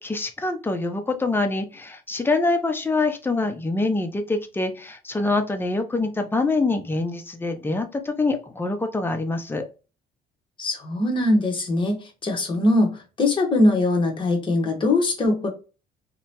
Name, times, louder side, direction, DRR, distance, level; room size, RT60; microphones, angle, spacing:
voice 1, 0.0-9.7, left 3 dB, 15° left, 0.5 m, -25 dB
voice 2, 10.6-15.5, left 2 dB, 30° left, 1.0 m, -21 dB
2.8 x 2.2 x 2.8 m
cardioid pair, 110°, 17 cm